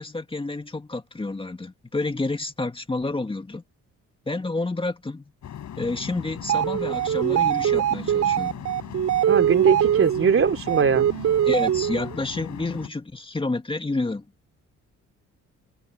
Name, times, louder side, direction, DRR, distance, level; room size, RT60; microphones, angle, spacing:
voice 1, 0.0-3.6 4.3-5.3 5.8-8.5 11.4-14.3, left 2 dB, 15° left, 2.2 m, -29 dB
sound 1, 5.4-12.9, left 10 dB, 65° left, 6.4 m, -38 dB
sound 2, 6.4-12.1, right 10 dB, 65° right, 4.5 m, -23 dB
voice 2, 9.3-11.1, right 6 dB, 45° right, 3.0 m, -21 dB
cardioid pair, 90°, 30 cm